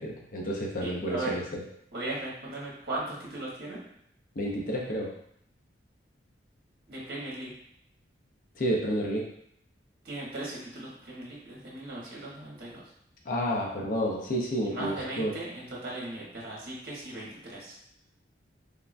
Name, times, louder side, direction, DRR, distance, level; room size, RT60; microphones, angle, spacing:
voice 1, 0.0-1.4 4.4-5.1 8.6-9.2 13.3-15.3, equal, 45° left, -2 dB, 0.5 m, -30 dB
voice 2, 0.8-1.4 1.9-3.8 6.9-7.5 10.0-12.9 14.6-17.8, right 2 dB, 55° right, -5 dB, 0.9 m, -37 dB
3.4 x 2.1 x 2.4 m, 0.71 s
head